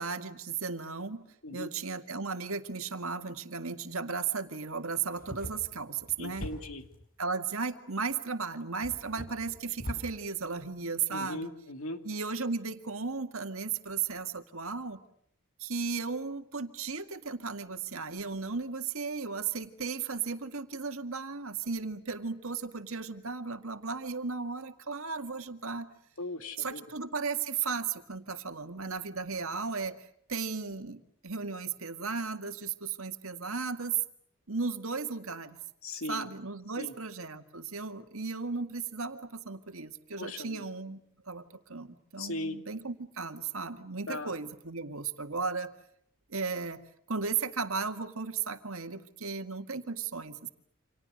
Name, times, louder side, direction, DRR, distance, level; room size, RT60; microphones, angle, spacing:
voice 1, 0.0-1.3 1.5-6.5 7.2-11.5 12.0-15.0 15.6-25.9 26.6-30.0 30.3-34.0 34.5-35.6 36.1-41.0 41.3-45.7 46.3-46.8 47.1-50.5, right 5 dB, 70° right, 8 dB, 2.1 m, -35 dB
sound 1, 5.1-7.0 8.0-8.1 8.8-10.1, equal, 40° left, 7.6 m, -42 dB
voice 2, 6.2-6.8 11.1-12.0 26.2-26.8 35.8-36.3 36.7-36.9 40.2-40.6 42.2-42.6 44.1-44.3, left 2 dB, 70° left, 7 dB, 2.8 m, -38 dB
29.5 x 27.0 x 6.6 m, 0.70 s
head